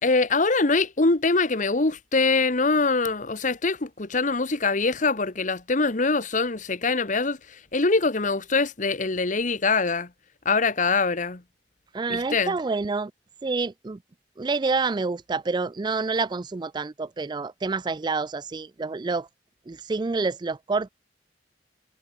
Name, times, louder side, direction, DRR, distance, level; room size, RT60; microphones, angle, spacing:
voice 1, 0.0-10.1 10.4-11.4 12.1-12.6, left 3 dB, 45° left, 1.3 m, -23 dB
voice 2, 11.9-13.1 13.4-14.0 14.4-19.3 19.7-20.9, right 4 dB, 25° right, 0.4 m, -28 dB
head